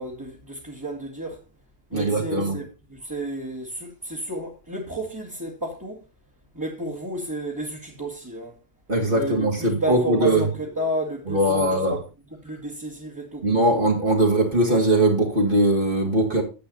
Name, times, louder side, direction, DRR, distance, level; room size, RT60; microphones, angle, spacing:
voice 1, 0.0-1.4 1.9-2.6 2.9-6.0 6.5-8.5 9.1-12.0 12.4-13.5, right 1 dB, 15° right, 2.0 m, -32 dB
voice 2, 1.9-2.6 8.9-10.5 11.3-12.0 13.4-16.4, right 1 dB, 45° right, 2.5 m, -21 dB
10.5 x 8.0 x 4.1 m
omnidirectional pair, 1.3 m